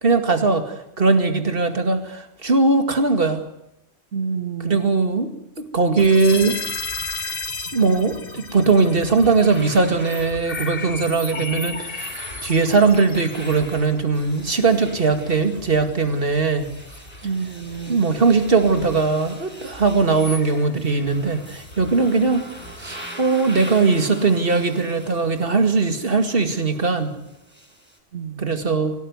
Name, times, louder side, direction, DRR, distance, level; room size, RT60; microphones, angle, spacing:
voice 1, 0.0-3.4 4.6-5.3 5.7-6.6 7.7-16.7 17.9-22.4 22.7-27.2 28.4-28.9, right 4 dB, 50° right, 7 dB, 2.5 m, -20 dB
voice 2, 4.1-4.9 17.2-18.0 28.1-28.6, right 5 dB, 80° right, 8 dB, 1.7 m, -29 dB
sound 1, 6.0-23.0, left 4 dB, 50° left, 1.9 m, -36 dB
sound 2, 8.7-28.0, right 1 dB, 10° right, 7.0 m, -42 dB
24.0 x 18.0 x 9.5 m, 0.84 s
omnidirectional pair, 1.2 m